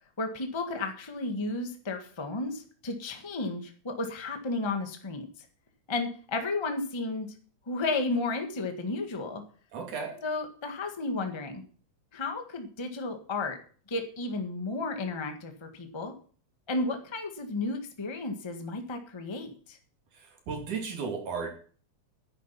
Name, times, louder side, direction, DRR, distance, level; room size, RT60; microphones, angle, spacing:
voice 1, 0.2-5.3 5.9-7.3 7.7-9.4 10.2-11.6 12.1-13.6 13.9-16.1 16.7-19.8, left 3 dB, 15° left, 5 dB, 0.9 m, -33 dB
voice 2, 9.7-10.2 20.1-21.5, right 5 dB, 85° right, 2 dB, 4.4 m, -35 dB
10.5 x 9.1 x 5.8 m, 0.43 s
omnidirectional pair, 3.4 m